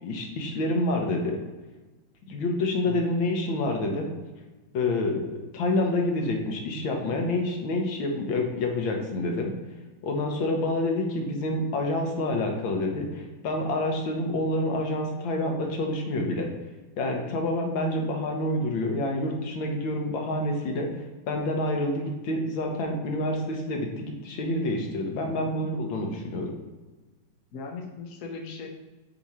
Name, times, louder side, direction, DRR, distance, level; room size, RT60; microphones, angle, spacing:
voice 1, 0.0-1.4 2.3-4.1 4.7-9.5 10.0-16.5 17.0-20.9 21.3-26.5, left 1 dB, 80° left, 2 dB, 1.7 m, -28 dB
voice 2, 27.5-28.7, left 4 dB, 55° left, 1 dB, 1.1 m, -39 dB
8.3 x 2.9 x 4.3 m, 1.2 s
omnidirectional pair, 2.1 m